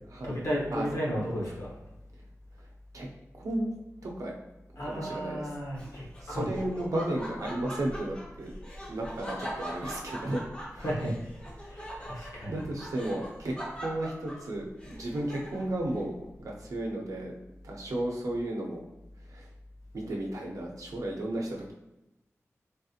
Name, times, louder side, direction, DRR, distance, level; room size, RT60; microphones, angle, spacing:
voice 1, 0.2-1.7 4.8-6.5 10.7-11.1 11.7-12.7, equal, 80° left, -4 dB, 1.0 m, -33 dB
voice 2, 3.4-3.7 4.0-4.3 4.8-5.5 6.2-8.5 8.9-10.4 10.7-10.9 12.5-13.5 13.8-17.3 17.6-18.8 19.3-19.5 19.9-21.7, right 1 dB, 85° right, -1 dB, 0.6 m, -33 dB
Laughter, 5.7-15.8, equal, 20° left, 0.6 m, -41 dB
3.4 x 2.8 x 2.4 m, 0.94 s
wide cardioid pair, 90°, 6 cm